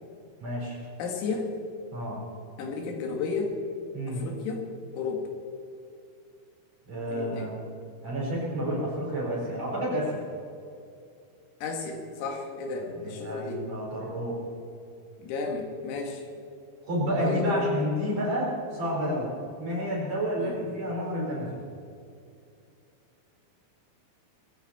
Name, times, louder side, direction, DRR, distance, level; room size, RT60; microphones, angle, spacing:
voice 1, 0.4-0.8 1.9-2.2 3.9-4.2 6.9-7.5 8.0-10.2 12.9-14.4 16.8-19.3 19.6-21.6, equal, 35° right, -4 dB, 4.9 m, -30 dB
voice 2, 1.0-1.5 2.6-3.5 4.1-4.7 4.9-5.2 7.1-7.5 11.6-13.7 15.2-16.2 17.2-17.6 20.4-20.6, left 4 dB, 85° left, 2 dB, 4.7 m, -33 dB
21.5 x 15.0 x 4.3 m, 2.5 s
omnidirectional pair, 5.9 m